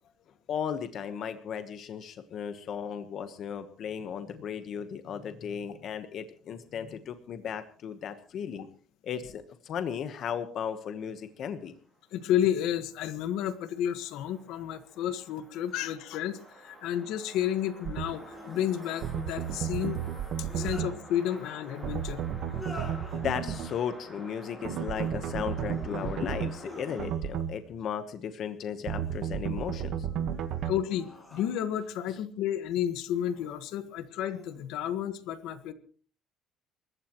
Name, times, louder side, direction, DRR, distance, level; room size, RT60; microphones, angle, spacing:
voice 1, 0.5-8.7 9.0-11.7 23.1-30.1 30.3-30.4, left 8 dB, 40° left, 9 dB, 1.2 m, -35 dB
voice 2, 12.1-20.0 20.4-22.2 30.6-35.7, left 10 dB, 70° left, 11 dB, 1.5 m, -31 dB
sound 1, 12.1-27.1, right 1 dB, 5° right, 6.1 m, -49 dB
sound 2, 15.7-15.8 18.1-18.7 20.2-20.9 22.4-23.2 24.7-25.1 25.6-26.2 26.6-27.5 28.7-29.3 29.9-32.0 33.0-33.5 34.1-34.6, left 2 dB, 15° left, 6.8 m, -47 dB
sound 3, 17.9-18.1 19.0-20.9 21.8-23.7 24.6-26.5 27.0-27.5 28.9-30.8, right 9 dB, 55° right, 1.3 m, -33 dB
28.5 x 15.0 x 3.1 m, 0.43 s
cardioid pair, 170°, 0 cm